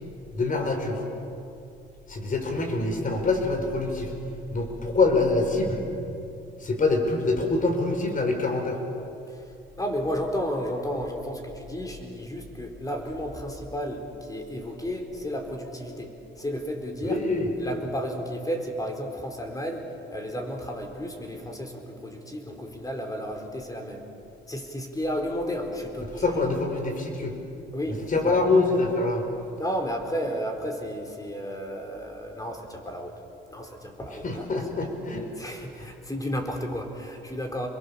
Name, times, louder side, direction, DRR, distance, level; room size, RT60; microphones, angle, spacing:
voice 1, 0.3-1.0 2.1-4.1 4.5-5.8 6.6-8.8 17.0-17.5 26.1-27.3 28.1-29.2 34.2-35.3, left 3 dB, 40° left, 4 dB, 5.2 m, -25 dB
voice 2, 9.3-17.2 17.6-24.1 24.5-26.4 27.7-28.4 29.6-33.2 33.5-34.6 35.4-37.7, equal, 15° left, 3 dB, 4.4 m, -33 dB
28.5 x 22.5 x 7.1 m, 2.7 s
cardioid pair, 90°, 20 cm